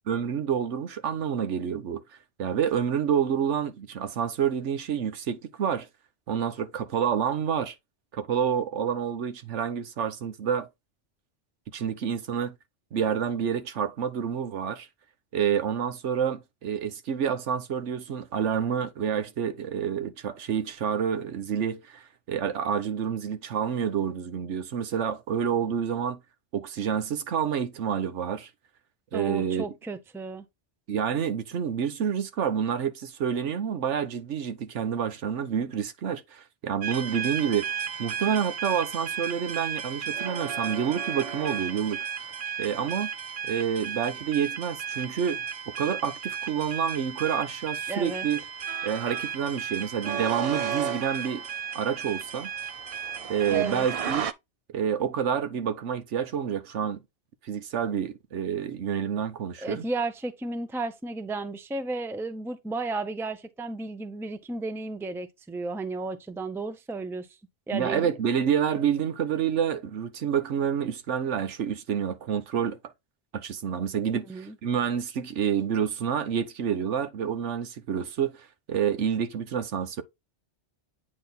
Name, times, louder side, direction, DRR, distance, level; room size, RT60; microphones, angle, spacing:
voice 1, 0.1-2.0 2.4-5.9 6.3-7.7 8.1-10.7 11.7-12.5 12.9-14.9 15.3-26.2 26.5-28.5 29.1-29.6 30.9-37.7 38.0-42.1 42.6-43.1 43.4-48.4 48.8-51.4 51.7-52.5 53.3-54.3 54.7-57.0 57.4-59.8 67.7-72.8 73.3-80.0, right 8 dB, 80° right, 1.2 m, -28 dB
voice 2, 29.1-30.4 47.9-48.2 53.5-53.9 59.6-67.3 67.7-68.1 74.3-74.6, right 3 dB, 5° right, 0.5 m, -33 dB
sound 1, 36.8-54.3, right 7 dB, 65° right, 0.3 m, -34 dB
8.7 x 3.0 x 3.9 m
omnidirectional pair, 1.2 m